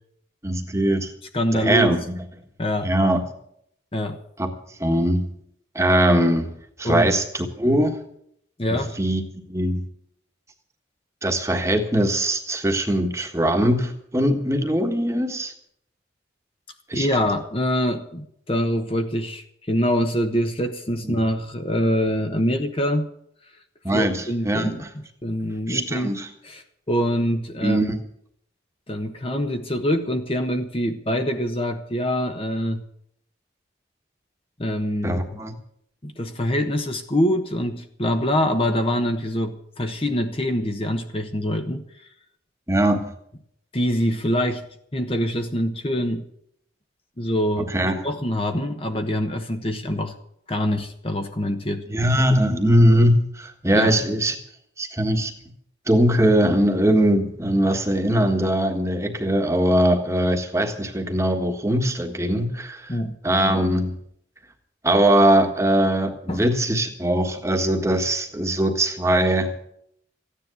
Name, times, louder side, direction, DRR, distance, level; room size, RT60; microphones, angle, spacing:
voice 1, 0.4-1.1 1.5-2.2 2.8-3.2 4.4-4.5 4.8-5.3 5.7-6.5 6.8-8.0 8.7-9.8 11.2-15.5 16.9-17.1 21.0-21.2 23.8-24.9 25.7-26.3 27.6-28.0 35.0-35.5 42.7-43.1 47.6-48.0 51.9-54.4 54.8-55.3 55.9-62.9 63.2-64.0 64.8-69.5, right 1 dB, 15° right, 5 dB, 1.5 m, -21 dB
voice 2, 1.3-2.0 2.6-2.9 3.9-4.2 6.8-7.1 8.6-9.0 16.9-23.1 23.9-24.9 25.2-26.1 26.4-27.8 28.9-32.8 34.6-35.4 36.0-41.8 43.7-44.6 44.9-46.2 47.2-50.1 50.5-51.9 52.3-52.5 53.7-53.9 62.9-63.2 66.3-66.4, equal, 30° left, 6 dB, 1.1 m, -24 dB
15.0 x 10.0 x 8.1 m, 0.71 s
head